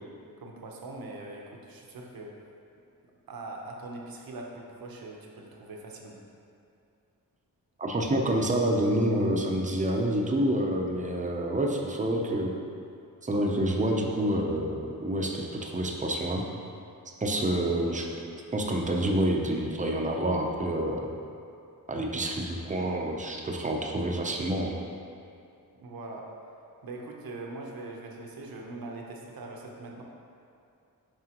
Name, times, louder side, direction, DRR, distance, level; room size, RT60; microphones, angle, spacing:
voice 1, 0.4-2.4 3.3-6.2 25.7-26.3 26.8-30.0, right 2 dB, 80° right, 0 dB, 0.9 m, -42 dB
voice 2, 7.8-12.5 13.2-16.4 17.2-18.1 18.5-21.0 21.9-24.8, right 1 dB, 20° right, 1 dB, 0.6 m, -28 dB
7.5 x 5.4 x 2.9 m, 2.6 s
wide cardioid pair, 160°, 35 cm